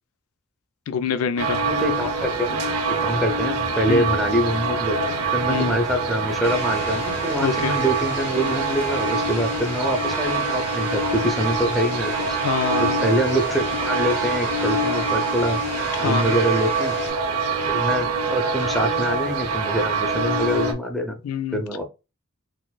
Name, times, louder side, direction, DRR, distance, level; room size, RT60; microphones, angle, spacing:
voice 1, 0.9-1.6 3.9-4.1 5.5-5.8 7.4-7.7 12.4-13.0 16.0-16.4 21.2-21.6, left 7 dB, 75° left, 0.4 m, -25 dB
sound 1, 1.4-20.7, right 3 dB, 85° right, 0.6 m, -25 dB
voice 2, 1.7-2.6 3.0-12.4 13.0-15.6 16.0-17.0 17.7-21.2 21.5-21.8, equal, ahead, 0.5 m, -25 dB
sound 2, 6.4-17.1, left 4 dB, 55° left, 0.9 m, -37 dB
4.1 x 2.5 x 2.2 m
head